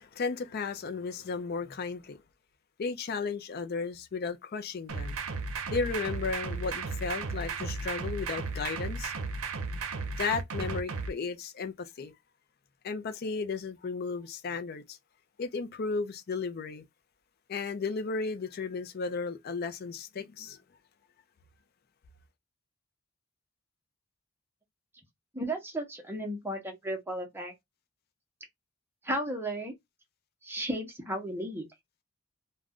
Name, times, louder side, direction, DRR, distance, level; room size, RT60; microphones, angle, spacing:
voice 1, 0.0-2.2 2.8-5.2 5.7-9.1 9.7-9.8 10.1-12.1 12.8-15.0 15.4-16.8 17.5-20.6, left 4 dB, 45° left, 0.4 m, -34 dB
sound 1, 4.9-11.1, right 4 dB, 80° right, 0.6 m, -35 dB
voice 2, 25.3-27.5 29.0-29.7 30.4-31.6, right 1 dB, 10° right, 0.8 m, -34 dB
2.4 x 2.2 x 3.5 m
head